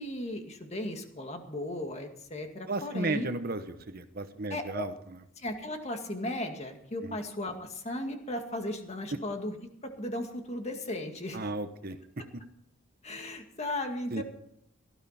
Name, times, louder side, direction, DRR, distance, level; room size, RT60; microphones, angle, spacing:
voice 1, 0.0-3.3 4.5-4.9 5.4-9.6 9.8-11.5 13.0-14.2, left 1 dB, 30° left, 4 dB, 2.1 m, -36 dB
voice 2, 2.7-4.9 7.0-7.2 11.3-12.0 14.1-14.2, right 2 dB, 45° right, 9 dB, 1.1 m, -34 dB
18.0 x 13.0 x 4.3 m, 0.74 s
head